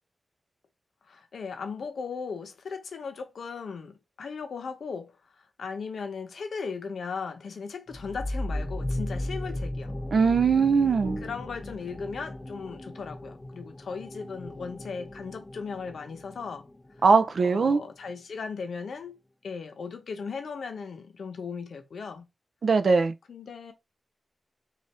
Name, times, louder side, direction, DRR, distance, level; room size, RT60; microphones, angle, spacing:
voice 1, 1.1-9.9 11.2-16.7 17.4-19.2 19.4-22.2 23.3-23.7, left 5 dB, 90° left, 0.8 m, -37 dB
sound 1, 7.9-17.3, left 1 dB, 25° left, 0.4 m, -36 dB
voice 2, 10.1-11.2 17.0-17.8 22.6-23.1, right 5 dB, 60° right, 0.4 m, -21 dB
sound 2, 11.0-12.1, right 1 dB, 90° right, 1.2 m, -42 dB
3.9 x 2.5 x 3.1 m
wide cardioid pair, 125°, 0 cm